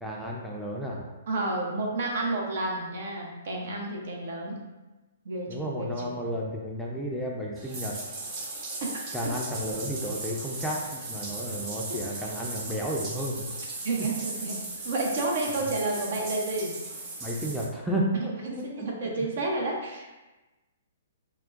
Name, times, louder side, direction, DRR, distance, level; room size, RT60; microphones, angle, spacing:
voice 1, 0.0-1.1 5.5-7.9 9.1-13.5 15.6-15.7 17.2-18.9, equal, ahead, -4 dB, 0.4 m, -32 dB
voice 2, 1.3-4.6 5.2-6.2 13.8-14.5 14.8-16.7 18.1-20.2, right 2 dB, 60° right, 0 dB, 0.7 m, -30 dB
Bathtub (filling or washing), 7.6-17.6, right 2 dB, 40° right, 1.1 m, -37 dB
4.3 x 2.1 x 2.5 m, 1.1 s
figure-of-eight pair, 125°, 0 cm